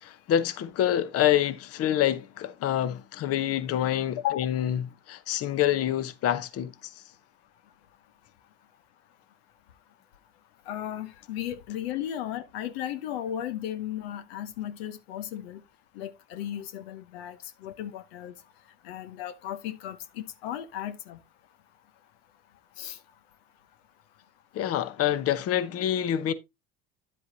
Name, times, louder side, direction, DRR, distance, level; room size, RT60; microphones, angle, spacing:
voice 1, 0.0-6.9 24.5-26.3, left 11 dB, 50° left, 0.9 m, -27 dB
voice 2, 10.7-15.6 16.0-18.3 18.8-21.2 22.8-23.0, left 11 dB, 90° left, 0.8 m, -35 dB
9.9 x 7.7 x 2.7 m
supercardioid pair, 90°, 30 cm